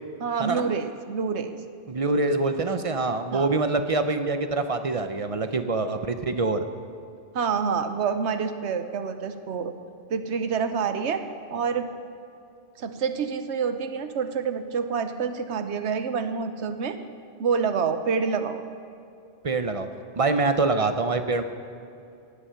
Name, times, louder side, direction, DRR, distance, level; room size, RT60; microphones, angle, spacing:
voice 1, 0.2-1.6 3.3-3.5 7.3-9.7 10.1-11.2 11.5-11.9 12.8-17.0 17.4-18.6, right 6 dB, 85° right, 9 dB, 1.1 m, -27 dB
voice 2, 1.9-6.6 19.4-19.9 20.2-21.4, right 3 dB, 40° right, 8 dB, 0.6 m, -25 dB
17.5 x 8.4 x 5.7 m, 2.5 s
omnidirectional pair, 1.1 m